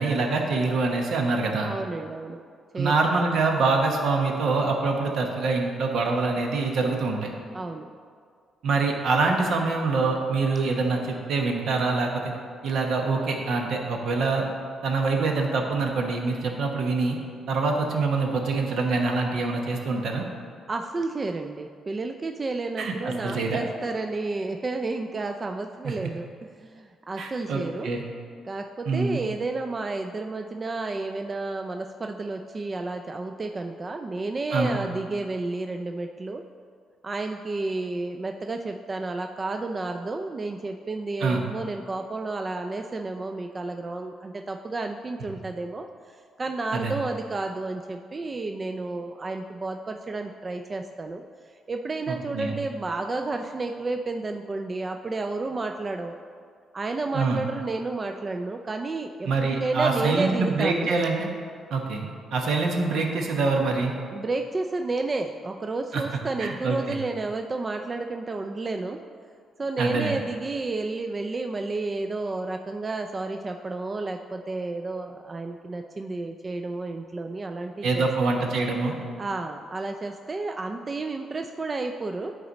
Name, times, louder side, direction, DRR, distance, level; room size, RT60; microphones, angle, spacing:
voice 1, 0.0-1.7 2.7-7.3 8.6-12.3 12.6-14.4 14.8-17.2 17.5-20.2 22.8-23.6 25.8-25.9 27.2-28.0 28.9-29.2 34.5-34.8 41.2-41.4 46.7-46.9 52.1-52.5 57.1-57.4 59.3-61.3 61.7-63.9 65.9-66.0 66.4-67.0 69.8-70.1 77.8-78.9, right 3 dB, 70° right, 2 dB, 1.0 m, -25 dB
voice 2, 1.6-2.4 2.7-3.0 7.5-7.9 20.7-27.9 28.5-36.4 37.0-45.9 46.4-51.2 51.7-56.2 56.7-59.3 59.6-60.9 64.1-69.0 69.6-78.3 79.2-82.3, right 3 dB, 30° right, 5 dB, 0.3 m, -31 dB
9.9 x 4.0 x 4.0 m, 2.2 s
cardioid pair, 90°, 0 cm